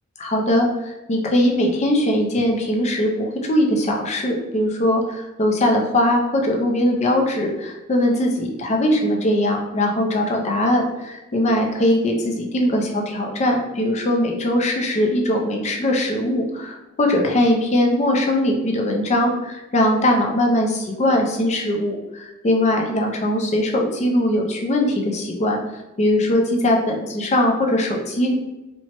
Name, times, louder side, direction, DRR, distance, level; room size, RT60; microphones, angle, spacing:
voice 1, 0.2-25.6 26.0-28.3, left 1 dB, 30° left, 1 dB, 0.4 m, -20 dB
2.9 x 2.1 x 2.8 m, 1.0 s
head